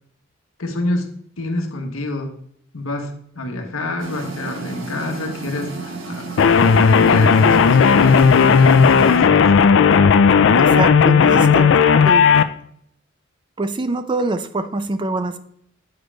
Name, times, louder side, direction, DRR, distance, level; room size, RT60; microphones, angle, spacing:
voice 1, 0.6-2.4 2.7-6.3 6.6-9.6 11.2-11.4, left 2 dB, 85° left, 4 dB, 1.1 m, -27 dB
sound 1, 4.0-9.2, right 2 dB, 65° right, 1.3 m, -31 dB
sound 2, 6.4-12.4, left 6 dB, 60° left, 0.4 m, -13 dB
voice 2, 10.6-11.8 12.0-12.3 13.6-15.4, right 2 dB, 25° right, 11 dB, 0.4 m, -24 dB
7.9 x 5.1 x 3.3 m, 0.67 s
head